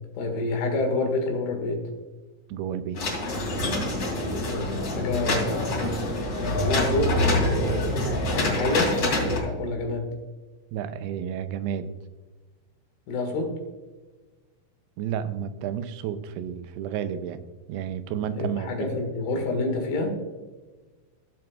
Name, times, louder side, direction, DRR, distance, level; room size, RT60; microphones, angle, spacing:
voice 1, 0.2-1.8 4.4-5.7 6.4-7.9 8.3-10.1 13.1-13.6 18.3-20.2, left 2 dB, 90° left, 3 dB, 3.9 m, -28 dB
voice 2, 2.5-3.0 10.7-11.9 15.0-17.4 17.7-19.0, right 9 dB, 90° right, 11 dB, 2.7 m, -31 dB
sound 1, 2.9-9.4, left 1 dB, 40° left, 3.5 m, -26 dB
16.5 x 7.8 x 2.4 m, 1.3 s
omnidirectional pair, 4.6 m